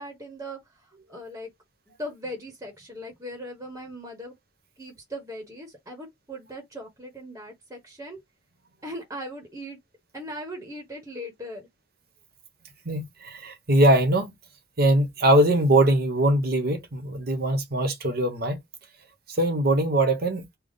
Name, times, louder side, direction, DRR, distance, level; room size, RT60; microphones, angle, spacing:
voice 1, 0.0-1.5 1.9-4.3 4.8-8.2 8.8-9.8 10.1-11.7, equal, 15° right, 1.1 m, -39 dB
voice 2, 12.8-14.3 14.8-18.6 19.3-20.6, right 1 dB, 55° right, 1.1 m, -22 dB
3.5 x 2.3 x 4.0 m
head